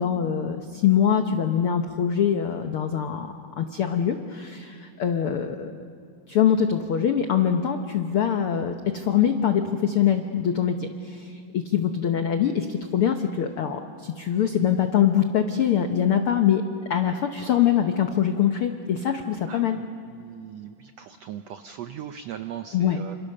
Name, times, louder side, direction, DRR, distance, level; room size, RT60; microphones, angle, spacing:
voice 1, 0.0-5.7 6.3-16.6 16.9-19.8 22.7-23.0, left 9 dB, 80° left, 6 dB, 1.2 m, -23 dB
voice 2, 19.5-23.2, right 10 dB, 85° right, 8 dB, 1.4 m, -39 dB
28.5 x 27.0 x 6.7 m, 2.4 s
omnidirectional pair, 4.0 m